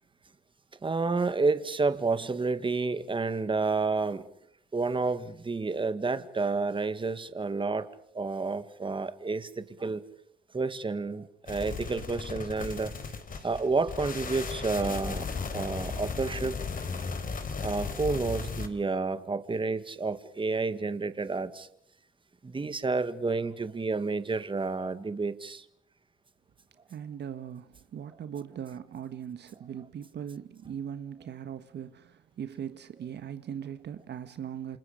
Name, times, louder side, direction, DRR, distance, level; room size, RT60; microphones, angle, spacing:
voice 1, 0.8-4.3 4.7-10.0 10.5-12.9 13.4-15.3 15.5-16.6 17.6-21.7 22.4-25.7, right 3 dB, 25° right, 2.0 m, -30 dB
sound 1, 11.5-18.7, left 5 dB, 45° left, 4.0 m, -36 dB
voice 2, 26.9-34.8, right 8 dB, 60° right, 1.5 m, -40 dB
29.5 x 27.5 x 5.2 m
cardioid pair, 90°, 20 cm